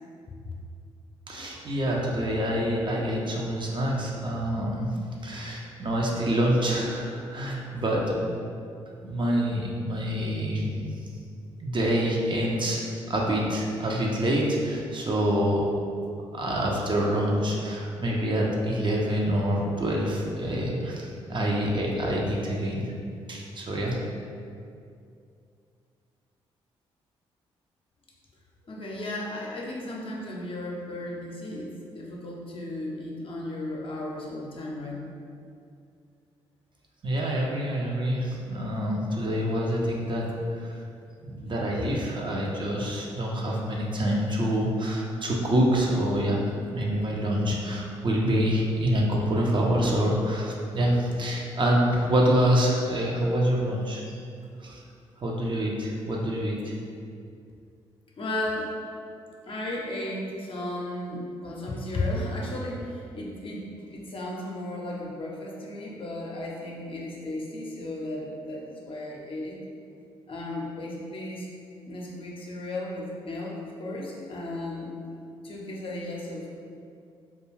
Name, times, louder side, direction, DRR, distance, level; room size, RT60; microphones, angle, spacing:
voice 1, 1.3-4.9 5.2-8.4 9.0-10.9 11.6-15.6 16.3-22.9 23.3-24.0 37.0-40.3 40.5-40.7 41.2-54.0 54.6-54.8 55.2-56.7, equal, 35° right, -2 dB, 0.5 m, -26 dB
voice 2, 28.7-35.0 58.2-58.7 59.4-69.6 70.3-71.5 71.8-74.9 75.4-76.5, left 1 dB, 40° left, -3 dB, 0.6 m, -34 dB
2.3 x 2.3 x 3.1 m, 2.4 s
hypercardioid pair, 40°, 14 cm